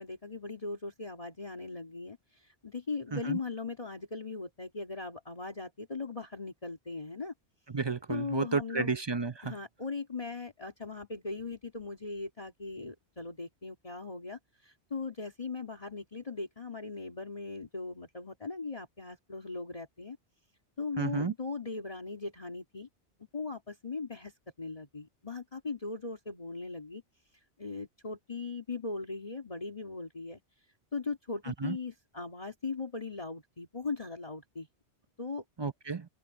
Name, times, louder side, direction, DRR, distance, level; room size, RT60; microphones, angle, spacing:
voice 1, 0.0-7.3 8.1-8.9 9.4-20.2 20.8-22.9 23.3-24.3 24.6-27.0 27.6-30.4 30.9-34.7 35.2-35.4, left 4 dB, 30° left, 2.5 m, -39 dB
voice 2, 7.7-9.5 21.0-21.3 31.6-31.8 35.6-36.1, right 4 dB, 30° right, 0.6 m, -32 dB
omnidirectional pair, 1.2 m